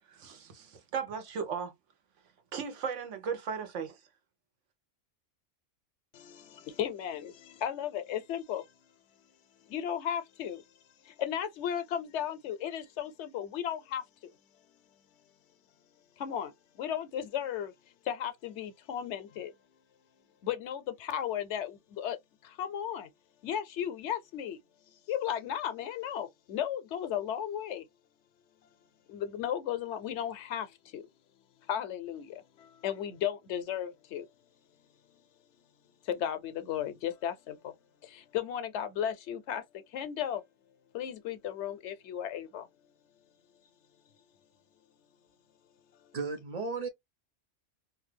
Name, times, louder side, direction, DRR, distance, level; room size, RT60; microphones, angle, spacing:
voice 1, 0.1-1.7 2.5-4.0, right 6 dB, 85° right, 1.1 m, -36 dB
voice 2, 6.1-8.7 9.7-10.6 11.0-14.3 16.2-17.7 18.0-19.5 20.4-22.2 22.4-23.1 23.4-24.6 25.1-27.8 29.1-31.1 31.7-34.3 36.0-37.7 38.0-40.4 40.9-42.7, left 9 dB, 75° left, 0.9 m, -35 dB
voice 3, 46.1-46.9, right 4 dB, 45° right, 0.5 m, -34 dB
2.6 x 2.3 x 3.2 m
omnidirectional pair, 1.2 m